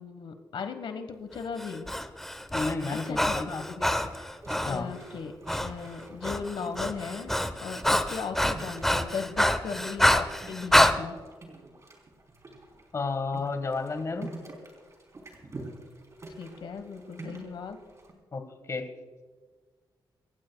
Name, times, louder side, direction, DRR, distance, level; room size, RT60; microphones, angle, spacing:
voice 1, 0.0-2.0 2.9-3.4 3.7-4.3 4.6-7.3 7.6-11.2 16.4-17.8, left 5 dB, 80° left, 7 dB, 1.3 m, -37 dB
Breathing, 1.6-4.8 5.5-5.7 6.0-11.0, left 1 dB, 5° left, 0.8 m, -26 dB
voice 2, 2.5-3.6 4.6-4.9 12.9-14.3 18.3-18.9, left 3 dB, 35° left, 7 dB, 1.6 m, -32 dB
sound 1, 4.0-18.1, right 2 dB, 35° right, 3.5 m, -47 dB
27.5 x 15.5 x 2.3 m, 1.5 s
wide cardioid pair, 135°, 8 cm